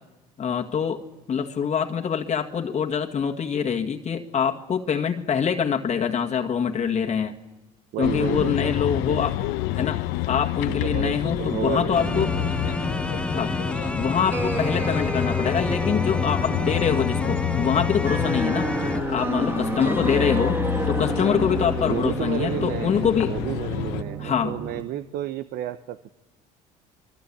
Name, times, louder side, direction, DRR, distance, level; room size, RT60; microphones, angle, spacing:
voice 1, 0.4-1.0 1.3-7.3 8.0-9.4 9.8-10.0 10.3-12.3 13.3-13.5 13.9-18.7 19.1-20.6 20.9-23.3 24.2-24.6, left 7 dB, 45° left, 2 dB, 1.9 m, -25 dB
voice 2, 7.9-9.3 10.7-12.4 21.2-21.5 21.9-26.1, right 12 dB, 70° right, 12 dB, 0.9 m, -32 dB
sound 1, 8.0-24.0, left 15 dB, 85° left, 0.9 m, -29 dB
sound 2, 10.8-19.0, left 2 dB, 5° left, 0.9 m, -29 dB
sound 3, 14.3-24.8, right 1 dB, 15° right, 2.1 m, -30 dB
25.5 x 23.0 x 8.7 m, 1.1 s
supercardioid pair, 85°, 17 cm